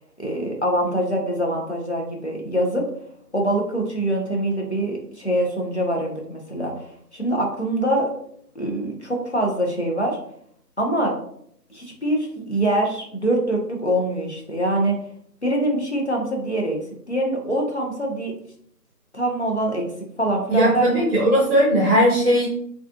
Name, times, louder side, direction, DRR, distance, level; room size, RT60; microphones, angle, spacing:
voice 1, 0.2-2.9 3.3-6.9 7.1-8.1 8.5-10.2 10.8-11.2 11.7-15.0 15.4-16.8 17.1-18.3 19.1-19.8 20.2-21.1, right 1 dB, 45° left, 0 dB, 0.5 m, -24 dB
voice 2, 20.5-22.5, equal, 40° right, -4 dB, 0.7 m, -18 dB
2.4 x 2.3 x 2.4 m, 0.67 s
figure-of-eight pair, 165°, 49 cm